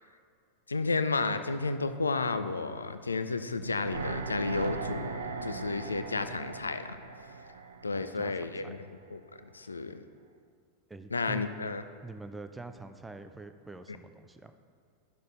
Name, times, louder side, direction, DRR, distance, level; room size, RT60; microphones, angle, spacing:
voice 1, 0.7-5.1 5.4-7.0 7.8-10.0 11.1-11.8, left 3 dB, 75° left, 10 dB, 0.4 m, -32 dB
sound 1, 3.6-8.7 9.0-9.1, right 4 dB, 70° right, 0.5 m, -39 dB
voice 2, 7.9-8.7 10.9-11.5 12.0-14.5, right 2 dB, 10° right, 9 dB, 0.5 m, -45 dB
11.0 x 6.4 x 4.0 m, 2.2 s
figure-of-eight pair, 90°, 0 cm